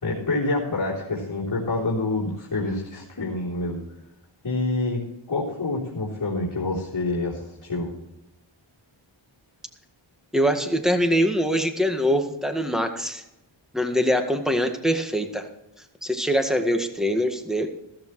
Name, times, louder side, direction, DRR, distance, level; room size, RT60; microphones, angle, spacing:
voice 1, 0.0-3.8 4.4-5.0 5.3-7.9, left 2 dB, 50° left, -8 dB, 3.7 m, -27 dB
voice 2, 10.3-13.2 13.7-15.4 16.0-17.7, equal, ahead, 5 dB, 1.8 m, -23 dB
14.5 x 13.5 x 3.2 m, 0.90 s
wide cardioid pair, 65°, 48 cm